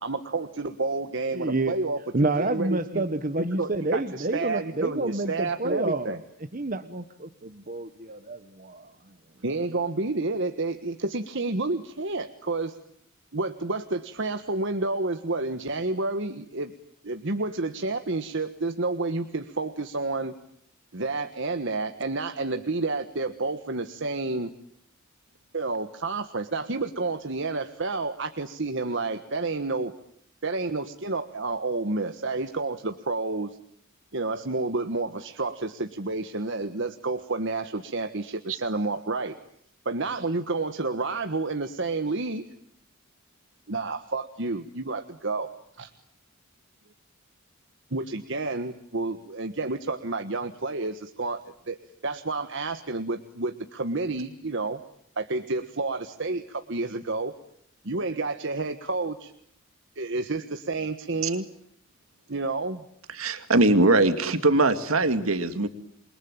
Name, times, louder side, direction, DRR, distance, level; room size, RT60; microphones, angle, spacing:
voice 1, 0.0-3.0 3.4-6.2 9.4-12.8 13.3-16.7 17.0-20.4 20.9-24.5 25.5-29.9 30.4-33.5 34.1-39.3 39.8-42.5 43.7-45.5 45.8-45.9 47.9-51.8 52.0-54.8 55.2-57.3 57.8-59.3 59.9-61.5 62.3-62.8, right 3 dB, 60° right, 7 dB, 1.5 m, -30 dB
voice 2, 1.3-1.7 2.1-6.1 6.5-8.9, right 2 dB, 40° right, 9 dB, 1.3 m, -28 dB
voice 3, 63.1-65.7, right 2 dB, 85° right, 9 dB, 2.2 m, -21 dB
28.5 x 23.5 x 8.9 m, 0.71 s
head